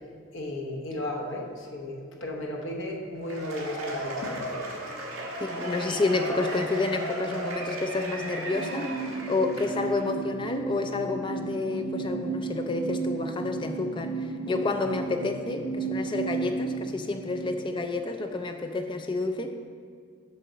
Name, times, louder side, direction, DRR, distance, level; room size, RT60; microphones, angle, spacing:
voice 1, 0.3-4.6 10.0-10.2 15.6-15.7, left 1 dB, 55° left, 0 dB, 1.0 m, -35 dB
Cheering / Applause / Crowd, 3.2-10.0, right 1 dB, 65° right, 1.5 m, -35 dB
voice 2, 5.4-19.5, left 3 dB, 20° left, 6 dB, 0.3 m, -29 dB
sound 1, 8.5-18.3, right 4 dB, 10° right, 1.6 m, -34 dB
7.7 x 5.9 x 4.0 m, 2.1 s
head